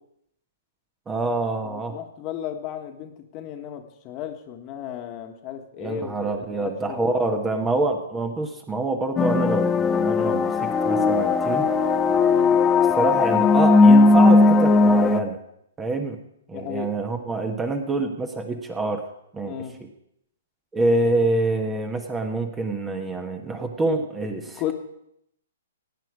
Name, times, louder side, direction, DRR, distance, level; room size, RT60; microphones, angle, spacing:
voice 1, 1.1-2.0 5.8-11.6 12.8-15.4 15.8-16.2 16.5-19.1 19.3-19.9 20.7-24.7, right 2 dB, 15° right, 5 dB, 1.3 m, -26 dB
voice 2, 1.6-7.4 12.3-12.6 16.5-16.9 19.5-19.7 24.6-24.7, left 10 dB, 35° left, 5 dB, 1.6 m, -34 dB
sound 1, 9.2-15.2, left 3 dB, 15° left, 0.7 m, -17 dB
16.5 x 9.2 x 4.9 m, 0.75 s
hypercardioid pair, 130°, 0 cm